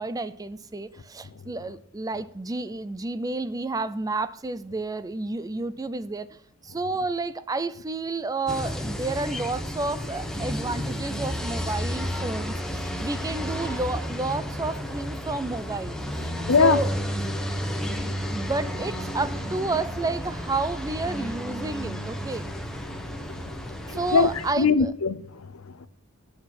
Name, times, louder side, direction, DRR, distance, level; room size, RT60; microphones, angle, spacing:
voice 1, 0.0-6.3 6.6-16.3 16.6-17.3 17.8-22.4 23.9-24.9, right 3 dB, 15° right, 0.4 m, -31 dB
sound 1, 8.5-24.5, equal, ahead, 1.1 m, -32 dB
voice 2, 16.4-16.8 17.8-18.1 23.3-23.4 23.9-25.9, left 4 dB, 80° left, 0.7 m, -23 dB
8.4 x 6.7 x 5.9 m
head